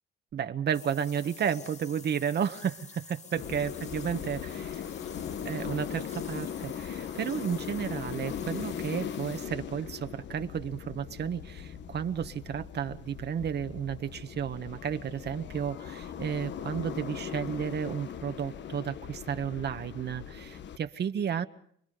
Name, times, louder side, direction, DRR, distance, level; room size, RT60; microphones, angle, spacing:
voice 1, 0.3-4.8 5.4-21.4, right 8 dB, 55° right, 1.5 m, -32 dB
sound 1, 0.7-9.4, left 4 dB, 35° left, 2.0 m, -50 dB
sound 2, 3.3-20.8, left 8 dB, 65° left, 1.2 m, -39 dB
29.5 x 21.5 x 5.2 m
cardioid pair, 90°, 20 cm